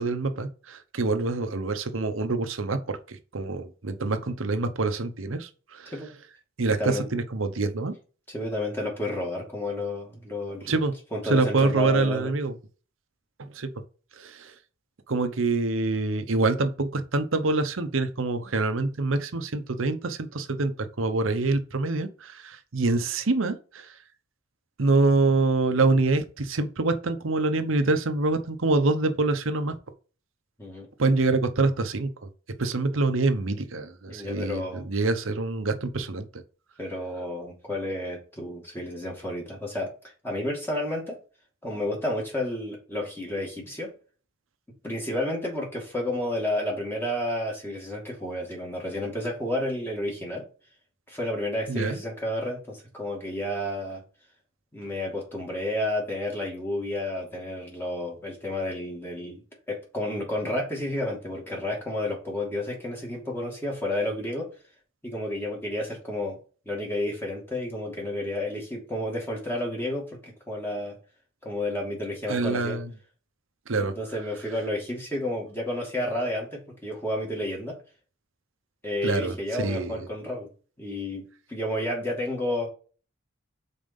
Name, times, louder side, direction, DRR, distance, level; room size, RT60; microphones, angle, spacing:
voice 1, 0.0-5.9 6.6-7.9 10.6-10.9 11.2-12.5 13.4-13.7 14.2-14.5 15.1-20.7 21.0-23.9 24.8-29.8 31.0-32.1 32.6-36.4 51.7-52.0 72.3-72.9 73.7-73.9 79.0-80.1, right 3 dB, 75° right, 0.8 m, -26 dB
voice 2, 6.6-7.1 8.3-10.8 11.1-12.3 30.6-30.9 34.1-34.9 36.8-39.9 40.2-41.2 41.6-43.9 44.8-50.5 51.1-54.0 54.7-59.4 59.7-64.5 65.0-66.4 66.7-71.0 71.4-72.8 73.8-77.8 78.8-80.5 80.8-82.7, left 1 dB, 10° left, 2.3 m, -31 dB
5.4 x 4.3 x 5.3 m
head